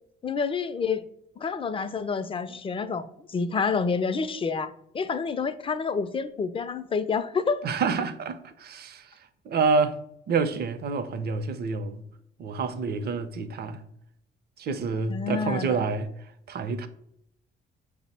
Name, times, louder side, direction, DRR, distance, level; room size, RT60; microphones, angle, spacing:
voice 1, 0.2-1.0 1.4-7.6 15.1-15.8, left 5 dB, 25° left, 0.4 m, -28 dB
voice 2, 7.6-9.1 9.4-10.0 10.3-12.0 12.4-13.8 14.6-16.1 16.5-16.9, right 4 dB, 55° right, 0.5 m, -28 dB
5.1 x 2.0 x 4.2 m
cardioid pair, 90°, 20 cm